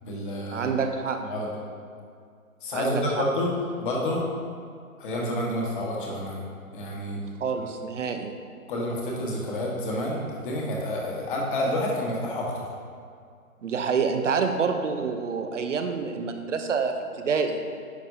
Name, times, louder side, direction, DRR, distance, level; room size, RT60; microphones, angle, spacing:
voice 1, 0.0-0.7 1.2-1.5 2.6-3.5 3.8-4.2 5.0-6.4 6.7-7.2 7.5-7.7 8.7-12.6, left 1 dB, 35° left, -2 dB, 1.5 m, -29 dB
voice 2, 0.5-1.2 2.7-3.2 7.2-8.3 13.6-17.6, right 5 dB, 55° right, 6 dB, 0.8 m, -27 dB
9.8 x 5.6 x 2.8 m, 2.2 s
figure-of-eight pair, 145°, 44 cm